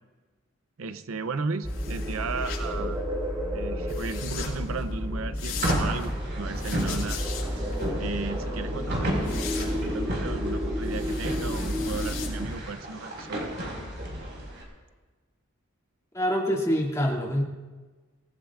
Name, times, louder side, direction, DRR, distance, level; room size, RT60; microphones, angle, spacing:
voice 1, 0.8-3.0 3.5-7.2 8.0-13.5, right 4 dB, 70° right, 12 dB, 0.6 m, -35 dB
sound 1, 1.6-12.5, equal, 20° right, 2.1 m, -31 dB
sound 2, 1.7-12.7, left 5 dB, 65° left, 6.2 m, -40 dB
sound 3, 5.6-14.6, right 1 dB, 50° right, 4.9 m, -33 dB
voice 2, 16.1-17.4, equal, 15° left, -3 dB, 2.6 m, -25 dB
25.5 x 18.5 x 2.5 m, 1.3 s
head